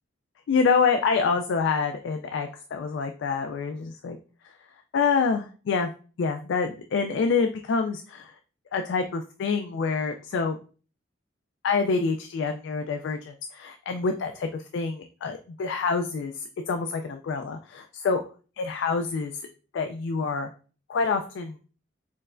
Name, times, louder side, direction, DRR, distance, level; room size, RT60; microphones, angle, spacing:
voice 1, 0.5-4.2 4.9-5.9 6.2-8.3 8.7-10.6 11.6-18.2 18.6-19.3 19.7-20.5 20.9-21.6, left 5 dB, 65° left, 6 dB, 0.3 m, -26 dB
4.4 x 3.1 x 2.4 m, 0.38 s
head